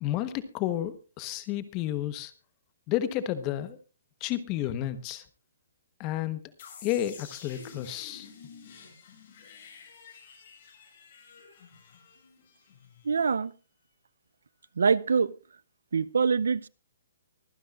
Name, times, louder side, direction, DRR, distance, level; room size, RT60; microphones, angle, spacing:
voice 1, 0.0-2.3 2.9-3.8 4.2-5.2 6.0-6.4 6.8-8.3, left 12 dB, 25° left, 1.2 m, -31 dB
sound 1, 6.6-13.4, left 6 dB, 45° left, 7.5 m, -50 dB
voice 2, 13.0-13.5 14.8-15.3 15.9-16.7, right 5 dB, 85° right, 0.6 m, -24 dB
24.0 x 10.0 x 2.5 m
hypercardioid pair, 160°, 0 cm